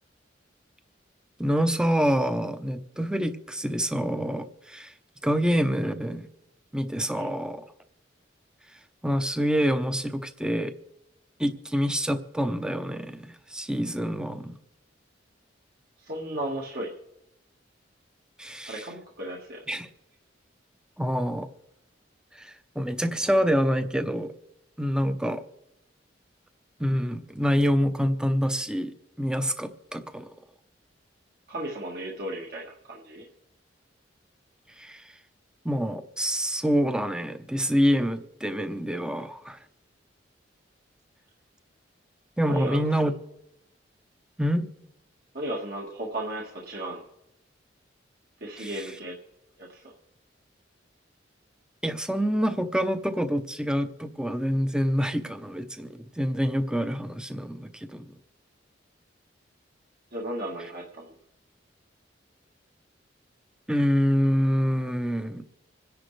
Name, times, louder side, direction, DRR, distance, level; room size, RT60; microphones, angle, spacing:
voice 1, 1.4-4.9 5.2-6.3 6.7-7.6 9.0-10.7 11.4-14.6 18.4-18.9 19.7-19.9 21.0-21.5 22.3-24.3 24.8-25.4 26.8-30.3 34.8-35.1 35.6-39.6 42.4-43.1 44.4-44.7 48.6-49.0 51.8-58.1 63.7-65.4, equal, 5° right, 9 dB, 0.7 m, -26 dB
voice 2, 16.0-16.9 18.7-19.6 31.5-33.2 42.4-42.8 45.3-47.0 48.4-49.1 49.6-49.8 60.1-61.1, right 1 dB, 55° right, -3 dB, 1.6 m, -35 dB
26.5 x 10.5 x 3.3 m, 0.88 s
head